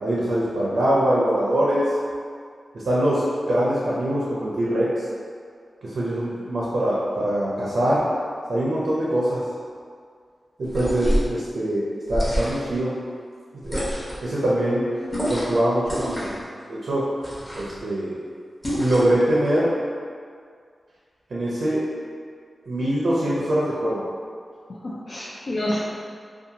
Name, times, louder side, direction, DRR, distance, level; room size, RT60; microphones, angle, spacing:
voice 1, 0.0-1.9 2.7-5.0 5.8-8.0 8.5-9.4 10.6-12.9 13.5-13.8 14.2-14.9 15.3-16.4 16.7-17.0 17.5-18.2 18.7-19.7 21.3-21.8 22.7-24.0, right 1 dB, 75° right, -7 dB, 0.5 m, -23 dB
sound 1, 10.6-11.3 12.1-12.8 13.6-14.2 15.1-15.6 15.8-16.4 17.2-17.8 18.6-19.2, equal, 15° left, 0.8 m, -27 dB
voice 2, 10.8-11.2 24.8-25.8, left 1 dB, 55° left, -6 dB, 0.3 m, -29 dB
2.7 x 2.3 x 2.7 m, 2.1 s
wide cardioid pair, 90°, 0 cm